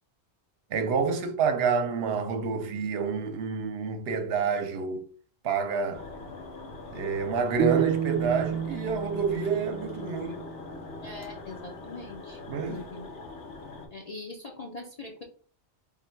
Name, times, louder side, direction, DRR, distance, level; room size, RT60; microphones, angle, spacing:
voice 1, 0.7-5.1 5.4-6.1 6.9-10.4 12.5-12.8, right 5 dB, 65° right, 0.8 m, -28 dB
sound 1, 5.9-13.9, left 3 dB, 80° left, 1.3 m, -42 dB
sound 2, 7.6-10.7, right 8 dB, 30° right, 0.6 m, -30 dB
voice 2, 11.0-12.4 12.7-13.1 13.9-15.2, left 3 dB, 45° left, 0.6 m, -42 dB
3.6 x 2.2 x 4.4 m
omnidirectional pair, 1.2 m